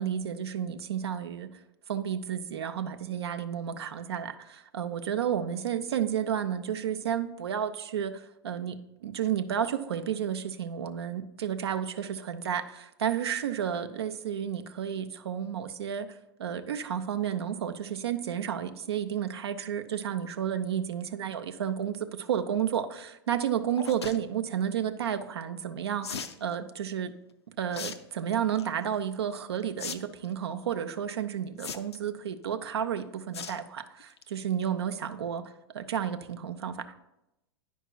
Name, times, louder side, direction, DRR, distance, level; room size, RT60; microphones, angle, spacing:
voice 1, 0.0-1.5 1.9-27.1 27.6-36.9, right 9 dB, 75° right, 8 dB, 0.4 m, -32 dB
sound 1, 23.8-24.2 26.0-26.4 27.7-28.0 28.3-28.7 29.8-29.9 30.2-30.3 31.6-32.1 33.3-33.6 34.0-34.2 34.6-34.7 34.9-35.0, left 6 dB, 85° left, 0.4 m, -37 dB
9.2 x 5.4 x 2.2 m, 0.89 s
hypercardioid pair, 95°, 13 cm